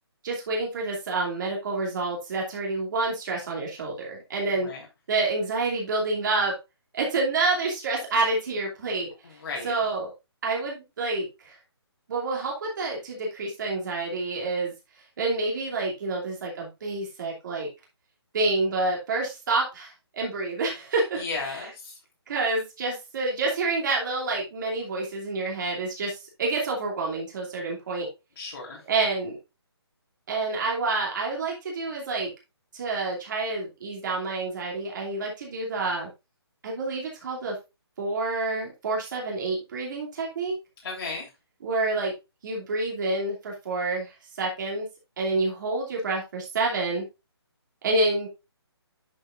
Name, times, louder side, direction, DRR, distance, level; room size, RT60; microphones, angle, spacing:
voice 1, 0.2-4.7 5.1-6.5 6.9-9.1 9.6-10.1 10.4-11.5 12.1-14.7 15.2-17.7 18.3-21.7 22.3-28.1 28.9-29.4 30.3-32.3 32.7-36.1 36.6-37.5 38.0-40.5 41.6-42.1 42.4-44.9 45.2-47.0 47.8-48.3, right 3 dB, 45° right, -2 dB, 2.6 m, -28 dB
voice 2, 9.2-9.7 21.2-22.0 27.6-27.7 28.4-28.8 40.8-41.3, left 3 dB, 65° left, -3 dB, 3.4 m, -35 dB
10.5 x 5.7 x 2.5 m, 0.25 s
hypercardioid pair, 160°, 14 cm